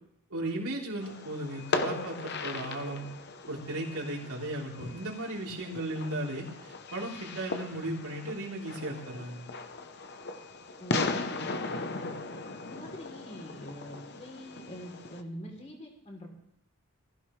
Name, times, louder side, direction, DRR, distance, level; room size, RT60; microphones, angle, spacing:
voice 1, 0.3-3.1 3.5-9.4, right 1 dB, 80° right, -2 dB, 3.7 m, -36 dB
Fireworks, 1.0-15.2, left 3 dB, 50° left, 0.8 m, -37 dB
voice 2, 10.8-12.1 12.6-16.3, equal, 30° left, 0 dB, 3.4 m, -44 dB
20.0 x 15.0 x 3.3 m, 0.77 s
head